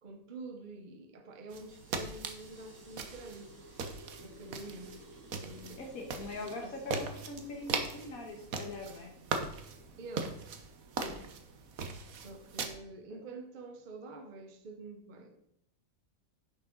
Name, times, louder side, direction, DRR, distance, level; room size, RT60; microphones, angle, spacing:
voice 1, 0.0-3.5 4.2-5.0 5.4-5.8 6.6-6.8 10.0-10.4 10.9-11.4 12.1-15.4, right 2 dB, 40° right, 0.9 m, -47 dB
sound 1, 1.5-12.6, right 1 dB, 60° right, 2.3 m, -58 dB
sound 2, 1.5-12.7, right 4 dB, 75° right, 1.4 m, -40 dB
voice 2, 5.8-9.1, left 2 dB, 75° left, 1.9 m, -42 dB
10.5 x 6.4 x 3.9 m
omnidirectional pair, 1.5 m